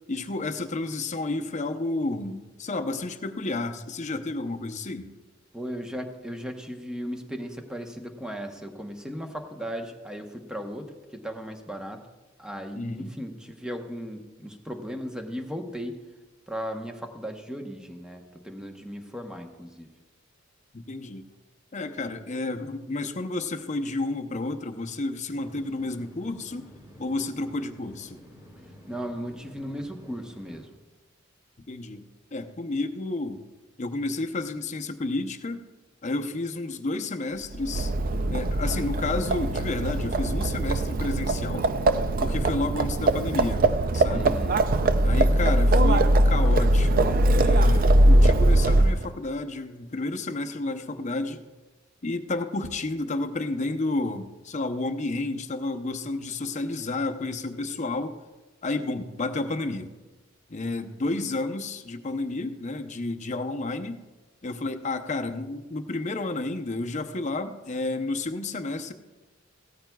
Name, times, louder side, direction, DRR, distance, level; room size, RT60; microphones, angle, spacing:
voice 1, 0.1-5.1 12.7-13.1 20.7-21.2 21.7-26.7 27.0-28.2 31.7-32.0 32.3-33.4 33.8-35.6 36.0-37.9 38.3-41.7 42.2-44.4 45.0-51.5 52.0-58.2 58.6-59.9 60.5-64.0 64.4-68.9, left 2 dB, 35° left, 7 dB, 0.7 m, -31 dB
voice 2, 5.5-12.0 12.4-16.0 16.5-19.9 28.9-30.7 42.6-42.7 44.1-45.2, equal, 5° right, 4 dB, 1.0 m, -37 dB
sound 1, 25.3-30.7, equal, 20° right, 3.8 m, -50 dB
Livestock farm animals working animals, 37.5-49.1, right 1 dB, 45° right, 0.5 m, -21 dB
16.5 x 13.5 x 2.3 m, 1.2 s
head